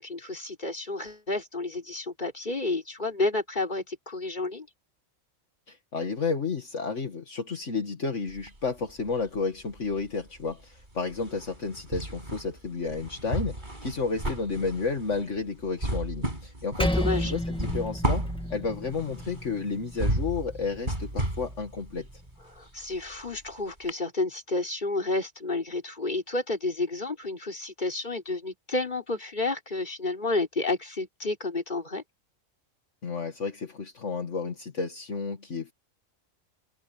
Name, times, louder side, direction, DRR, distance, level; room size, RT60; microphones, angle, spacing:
voice 1, 0.0-4.7 16.9-17.3 22.5-32.0, left 2 dB, 35° left, 4.1 m, -30 dB
voice 2, 5.7-22.2 33.0-35.7, left 4 dB, 60° left, 2.2 m, -32 dB
sound 1, 8.3-9.4 9.7-23.5 23.9-24.0, right 1 dB, 35° right, 6.0 m, -34 dB
Percussion, 16.8-21.6, equal, 5° left, 1.8 m, -32 dB
omnidirectional pair, 1.4 m